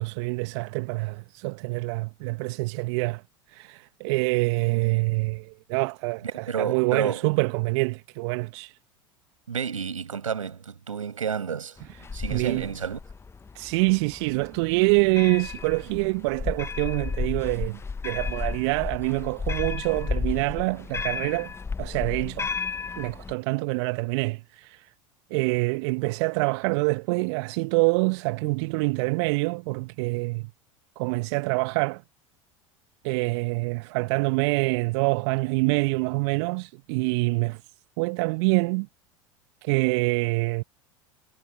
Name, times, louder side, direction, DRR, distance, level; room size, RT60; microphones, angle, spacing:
voice 1, 0.0-3.2 3.5-8.8 12.3-12.7 13.5-21.5 21.8-22.5 23.0-24.9 25.3-30.5 31.0-32.0 33.0-37.6 38.0-38.9 39.6-40.6, right 28 dB, 55° right, 1.2 m, -26 dB
voice 2, 6.2-7.3 9.5-11.8 12.1-13.0, right 7 dB, 80° right, 5.9 m, -30 dB
sound 1, 11.8-23.3, left 5 dB, 15° left, 0.9 m, -33 dB
figure-of-eight pair, 80°, 17 cm